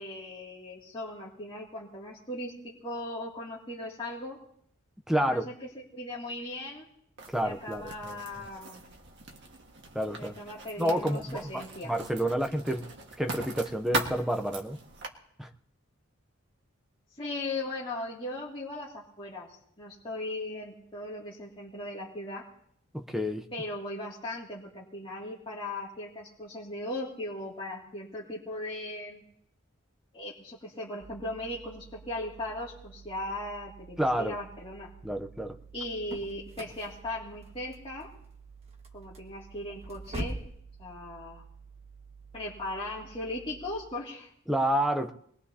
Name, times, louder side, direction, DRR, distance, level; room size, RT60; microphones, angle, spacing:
voice 1, 0.0-2.5 2.8-4.4 5.2-6.9 7.4-8.8 10.2-11.9 17.2-19.5 19.8-22.4 23.5-29.2 30.1-34.9 35.7-38.1 38.9-40.4 40.8-41.4 42.3-44.3, left 1 dB, 25° left, -7 dB, 2.5 m, -38 dB
voice 2, 5.1-5.5 7.3-8.2 9.9-10.3 10.8-12.9 13.2-14.8 15.4-15.5 22.9-23.5 34.0-34.4 35.0-35.6 44.5-45.1, right 1 dB, ahead, 5 dB, 0.7 m, -29 dB
Writing, 7.2-15.1, right 3 dB, 60° right, 1.7 m, -40 dB
sound 1, 31.0-43.8, right 6 dB, 80° right, 2.8 m, -52 dB
sound 2, 35.6-40.6, equal, 30° right, 1.5 m, -42 dB
24.5 x 21.0 x 2.8 m, 0.68 s
head